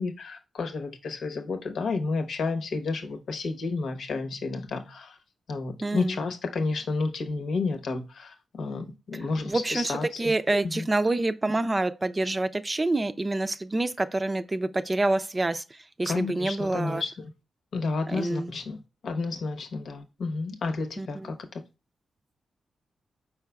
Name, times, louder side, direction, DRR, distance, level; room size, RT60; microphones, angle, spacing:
voice 1, 0.0-5.2 5.5-10.3 10.6-10.9 16.1-17.3 17.7-21.6, left 3 dB, 75° left, 0.9 m, -31 dB
voice 2, 5.8-6.2 9.5-15.6 16.0-17.0 18.1-18.5 21.0-21.1, right 2 dB, 30° right, 0.4 m, -27 dB
4.6 x 4.6 x 2.2 m
cardioid pair, 55°, 0 cm